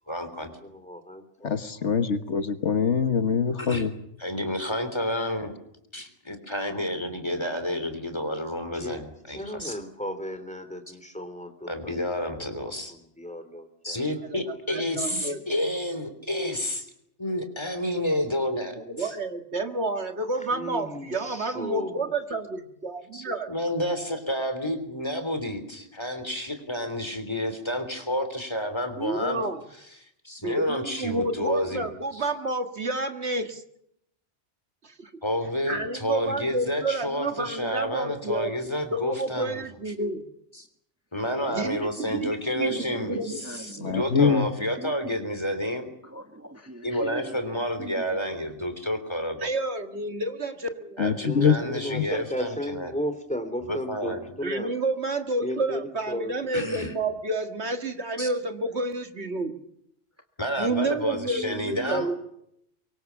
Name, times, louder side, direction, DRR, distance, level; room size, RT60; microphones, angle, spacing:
voice 1, 0.1-0.5 3.6-3.8 4.2-5.5 5.9-9.8 11.7-12.9 13.8-16.9 17.2-19.1 23.1-29.4 30.0-31.9 32.1-32.3 35.2-39.6 40.6-40.7 41.1-45.9 46.8-49.5 51.0-52.9 53.6-54.3 56.5-56.9 58.2-58.3 60.4-62.1, equal, 20° left, 8 dB, 3.6 m, -30 dB
voice 2, 0.6-1.5 8.7-9.0 9.3-12.3 12.5-14.2 14.5-14.6 20.5-22.1 51.2-54.7 55.4-56.4, equal, 5° left, 8 dB, 2.9 m, -35 dB
voice 3, 1.4-3.9 43.8-44.5 51.0-51.6 51.9-52.0, left 6 dB, 75° left, 10 dB, 1.7 m, -23 dB
voice 4, 14.3-15.4 18.8-23.5 29.0-29.6 30.4-33.6 34.8-35.1 35.7-38.5 38.9-40.2 41.5-44.0 49.4-51.5 54.4-59.5 60.6-62.1, right 2 dB, 65° right, 7 dB, 2.1 m, -30 dB
voice 5, 41.8-45.1 46.0-48.2 61.1-62.1, right 1 dB, 15° right, 5 dB, 1.5 m, -41 dB
24.0 x 23.0 x 7.1 m, 0.76 s
omnidirectional pair, 1.2 m